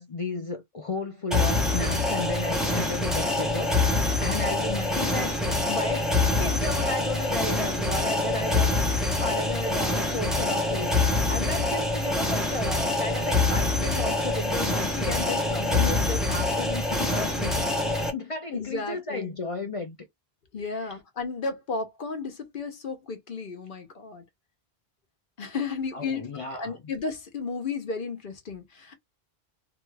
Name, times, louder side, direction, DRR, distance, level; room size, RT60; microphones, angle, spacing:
voice 1, 0.0-20.0 20.6-21.0 25.9-26.9, left 3 dB, 45° left, 0.5 m, -34 dB
sound 1, 1.3-18.1, left 2 dB, ahead, 0.7 m, -25 dB
voice 2, 18.5-19.3 20.5-24.2 25.4-28.9, left 4 dB, 60° left, 0.9 m, -33 dB
2.9 x 2.3 x 3.2 m
omnidirectional pair, 1.0 m